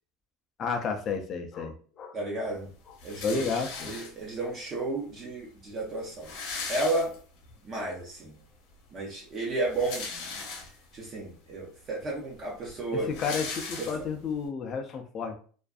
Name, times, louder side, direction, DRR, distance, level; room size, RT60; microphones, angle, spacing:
voice 1, 0.6-2.2 3.2-3.9 13.1-15.3, left 5 dB, 30° left, 4 dB, 0.4 m, -31 dB
voice 2, 2.1-2.7 3.0-6.3 6.7-7.1 7.6-8.4 8.9-10.1 10.9-13.1 13.8-13.9, right 2 dB, 25° right, -2 dB, 0.5 m, -32 dB
sound 1, 3.0-4.4 5.3-5.4 5.6-5.7 5.9-7.5 8.0-8.1 9.5-11.0 11.6-11.7 12.0-14.3, left 4 dB, 65° left, 0.8 m, -39 dB
2.5 x 2.4 x 2.2 m, 0.42 s
cardioid pair, 170°, 0 cm